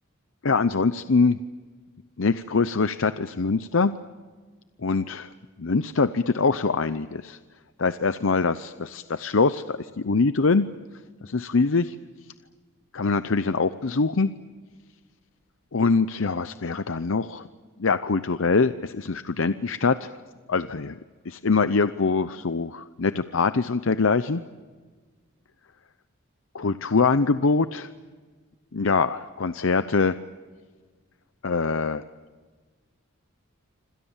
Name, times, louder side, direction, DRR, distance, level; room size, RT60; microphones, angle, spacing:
voice 1, 0.4-1.4 2.2-3.9 4.8-5.3 5.6-7.4 7.8-10.7 11.2-11.9 12.9-14.3 15.7-17.5 17.8-20.1 20.5-21.0 21.2-24.4 26.5-27.9 28.7-30.2 31.4-32.0, left 4 dB, 65° left, 12 dB, 0.7 m, -23 dB
27.0 x 26.5 x 7.3 m, 1.4 s
head